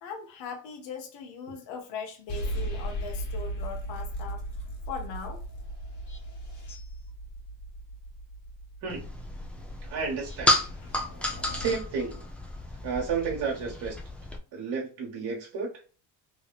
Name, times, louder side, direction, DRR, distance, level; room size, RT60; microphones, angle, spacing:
voice 1, 0.0-4.4 4.9-5.4, left 5 dB, 70° left, 0.9 m, -39 dB
sound 1, 2.3-11.7, right 1 dB, 40° left, 1.4 m, -37 dB
sound 2, 8.9-14.4, left 1 dB, 5° left, 0.3 m, -32 dB
voice 2, 9.8-10.6 11.5-12.2 12.8-14.0 14.5-15.7, right 5 dB, 60° right, 1.3 m, -31 dB
3.1 x 2.8 x 2.3 m
cardioid pair, 130°, 45 cm